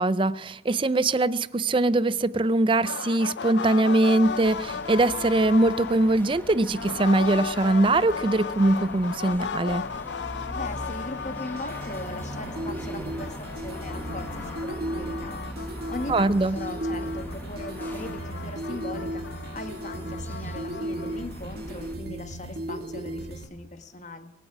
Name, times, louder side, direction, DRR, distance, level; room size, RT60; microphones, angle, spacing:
voice 1, 0.0-9.9 16.1-16.6, right 2 dB, 30° right, 0.4 m, -22 dB
sound 1, 2.8-6.2 6.7-12.9 13.2-21.3, left 6 dB, 80° left, 0.5 m, -36 dB
sound 2, 4.2-21.9, equal, 10° left, 1.6 m, -41 dB
voice 2, 10.5-24.3, left 2 dB, 40° left, 1.4 m, -39 dB
sound 3, 11.4-23.4, right 1 dB, 60° right, 2.1 m, -36 dB
24.0 x 8.1 x 5.9 m
head